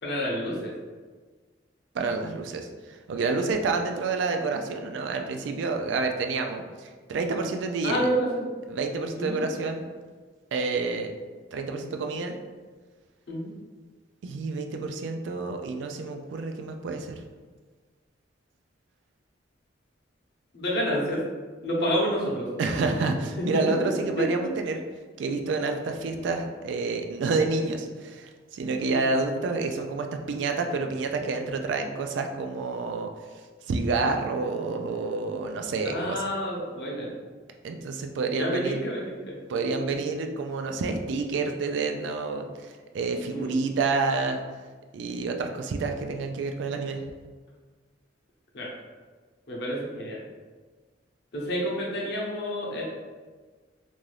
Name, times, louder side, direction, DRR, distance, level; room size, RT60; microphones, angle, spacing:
voice 1, 0.0-0.7 7.8-8.4 9.2-9.4 13.3-13.5 20.5-21.2 21.6-22.5 24.2-24.3 28.9-29.0 35.8-37.1 38.3-39.4 40.0-40.1 43.3-43.5 48.5-48.7 49.5-50.2 51.3-52.8, equal, 65° left, -3 dB, 0.7 m, -29 dB
voice 2, 1.9-8.1 8.7-9.9 10.5-11.1 11.5-12.4 14.2-17.2 22.6-24.8 25.2-33.1 33.7-36.2 37.6-38.8 39.5-44.4 44.9-47.0, right 3 dB, 80° right, 5 dB, 0.3 m, -29 dB
2.6 x 2.3 x 3.2 m, 1.4 s
head